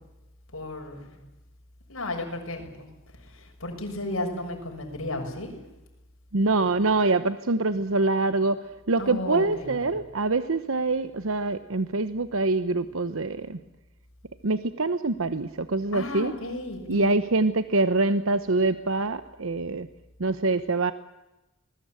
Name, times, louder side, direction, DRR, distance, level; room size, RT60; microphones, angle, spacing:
voice 1, 0.5-1.2 1.9-2.9 3.3-5.5 9.0-10.0 15.9-17.2, left 1 dB, 75° left, 2 dB, 7.0 m, -34 dB
voice 2, 6.3-13.6 14.4-16.3 16.9-19.9 20.2-20.9, right 3 dB, 70° right, 11 dB, 1.0 m, -25 dB
27.0 x 21.0 x 9.0 m, 0.99 s
head